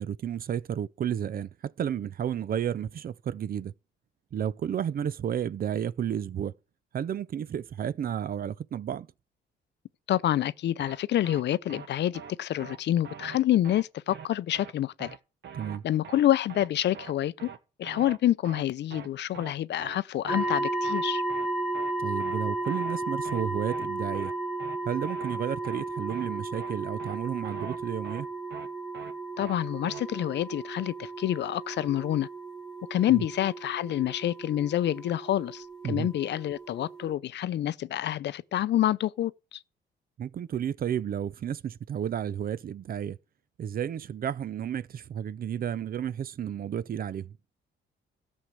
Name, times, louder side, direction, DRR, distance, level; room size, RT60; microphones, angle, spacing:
voice 1, 0.0-3.7 4.3-6.5 6.9-9.1 15.5-15.8 22.0-24.3 24.8-28.3 33.1-33.2 35.8-36.1 40.2-43.2 43.6-47.3, right 9 dB, 50° right, 0.5 m, -32 dB
voice 2, 10.1-15.1 15.8-17.5 17.8-21.2 29.4-32.3 32.9-39.6, left 12 dB, 60° left, 0.5 m, -27 dB
sound 1, 10.8-11.0 11.2-11.4 11.7-11.9 12.1-12.3 12.6-12.8 13.0-13.4 13.6-13.8 14.1-14.3 14.5-14.7 15.0-15.2 15.4-15.8 16.0-16.2 16.5-16.7 16.9-17.1 17.4-17.6 17.8-18.2 18.4-18.6 18.9-19.1 19.3-19.5 19.8-20.0 20.2-20.6 20.8-21.0 21.3-21.5 21.7-21.9 22.2-22.4 22.6-23.0 23.2-23.4 23.7-23.9 24.1-24.3 24.6-24.8 25.0-25.4 25.6-25.8 26.1-26.3 26.5-26.7 27.0-27.2 27.4-27.8 28.0-28.2 28.5-28.7 28.9-29.1 29.4-29.6 29.8-30.0, right 7 dB, 65° right, 1.2 m, -43 dB
sound 2, 20.3-37.2, right 2 dB, ahead, 2.4 m, -34 dB
13.0 x 6.4 x 7.5 m
cardioid pair, 90°, 20 cm